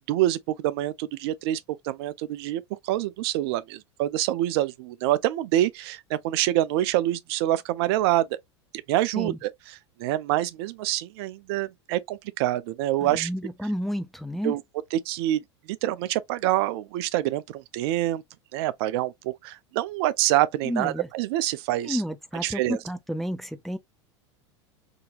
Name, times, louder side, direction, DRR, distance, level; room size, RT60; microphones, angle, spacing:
voice 1, 0.1-8.3 8.9-9.5 10.0-13.3 14.4-14.6 14.9-18.2 18.5-22.0 22.4-22.8, right 14 dB, 60° right, 0.4 m, -26 dB
voice 2, 13.0-14.5 20.6-21.1 21.9-23.8, equal, ahead, 0.4 m, -31 dB
3.7 x 2.8 x 2.4 m
hypercardioid pair, 95°, 15 cm